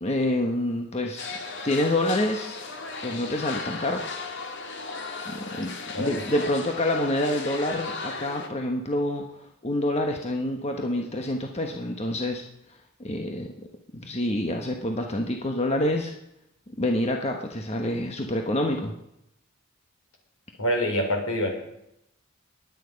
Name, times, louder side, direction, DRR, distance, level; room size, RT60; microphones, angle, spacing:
voice 1, 0.0-1.4 1.6-2.6 3.0-4.0 5.2-9.2 9.6-12.4 13.0-13.5 13.9-16.1 16.8-18.9, left 1 dB, 30° left, 3 dB, 1.2 m, -27 dB
sound 1, 1.2-8.5, left 4 dB, 55° left, 1.9 m, -36 dB
voice 2, 20.6-21.7, equal, 70° left, 3 dB, 4.3 m, -26 dB
21.5 x 9.3 x 5.2 m, 0.82 s
head